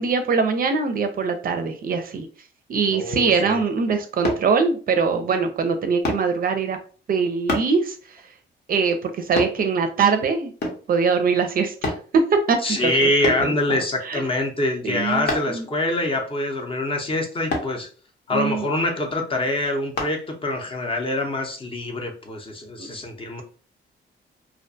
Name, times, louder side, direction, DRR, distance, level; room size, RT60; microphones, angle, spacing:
voice 1, 0.0-2.3 2.7-6.8 7.1-8.2 8.7-10.5 10.9-13.8 14.0-14.2 14.8-15.7 18.3-18.7 22.8-22.9, right 5 dB, 45° right, 7 dB, 0.4 m, -22 dB
voice 2, 2.9-3.6 12.6-17.9 18.3-23.4, left 1 dB, 25° left, 3 dB, 0.6 m, -25 dB
sound 1, 4.2-4.5 6.0-6.3 7.5-7.7 9.4-9.6 10.6-10.9 11.8-12.1 13.2-13.5 15.3-15.6 17.5-17.7 20.0-20.2 20.7-20.9, left 2 dB, 60° left, 0.8 m, -26 dB
2.4 x 2.2 x 2.6 m, 0.39 s
cardioid pair, 90°, 20 cm